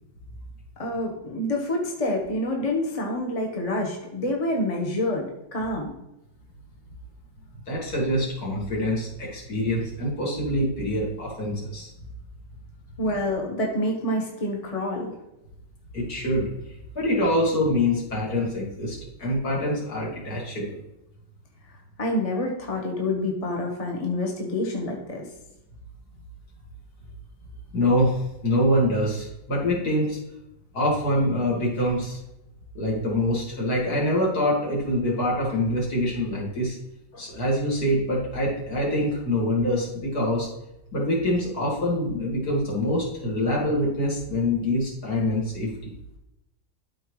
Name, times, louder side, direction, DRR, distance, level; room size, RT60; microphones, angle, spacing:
voice 1, 0.8-5.9 13.0-15.1 22.0-25.2 37.1-37.2, left 1 dB, 25° left, 0 dB, 1.0 m, -27 dB
voice 2, 7.7-11.9 15.9-16.5 17.0-20.8 27.7-30.2 30.7-32.2 32.7-36.8 37.2-40.5 40.9-45.9, left 1 dB, 55° left, -4 dB, 2.5 m, -25 dB
12.5 x 4.5 x 3.1 m, 0.89 s
omnidirectional pair, 2.0 m